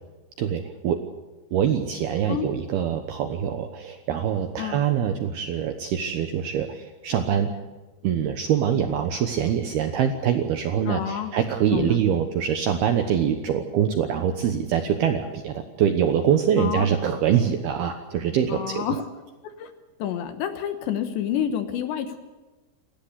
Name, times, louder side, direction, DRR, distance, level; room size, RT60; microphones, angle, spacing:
voice 1, 0.4-1.0 1.5-7.5 8.0-18.8, right 8 dB, 75° right, 6 dB, 2.4 m, -24 dB
voice 2, 10.8-11.3 11.7-12.0 16.6-16.9 18.5-19.0 19.6-19.7 20.0-22.2, left 9 dB, 70° left, 8 dB, 3.0 m, -28 dB
28.0 x 14.0 x 8.1 m, 1.2 s
omnidirectional pair, 5.9 m